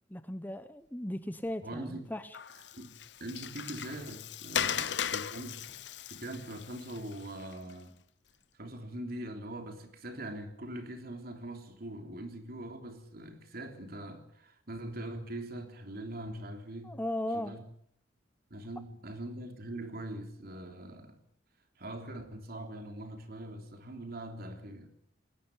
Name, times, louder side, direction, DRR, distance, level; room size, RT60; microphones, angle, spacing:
voice 1, 0.1-2.4 16.8-17.6, left 1 dB, 10° left, 0.8 m, -37 dB
voice 2, 1.6-2.0 2.7-5.7 6.1-8.0 8.6-17.0 17.3-17.6 18.5-21.2 21.8-24.9, right 1 dB, 55° right, 3.4 m, -42 dB
Water, 2.3-7.7, left 8 dB, 65° left, 0.8 m, -37 dB
20.5 x 18.5 x 8.6 m
head